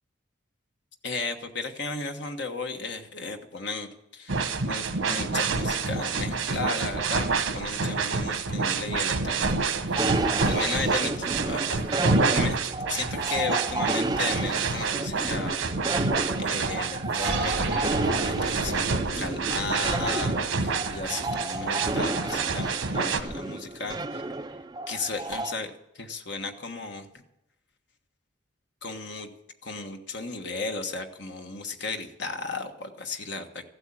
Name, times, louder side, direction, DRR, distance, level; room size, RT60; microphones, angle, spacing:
voice 1, 1.0-4.4 4.6-11.9 12.3-12.6 12.9-15.6 16.4-17.9 18.2-24.2 24.9-27.1 28.8-29.3 29.6-33.7, left 3 dB, 60° left, 5 dB, 1.3 m, -35 dB
sound 1, 4.3-23.2, right 4 dB, 85° right, 1.1 m, -28 dB
sound 2, 10.0-25.5, right 2 dB, 20° right, 0.4 m, -32 dB
sound 3, 17.2-22.3, right 2 dB, 55° right, 2.4 m, -35 dB
14.5 x 8.1 x 8.9 m, 0.86 s
head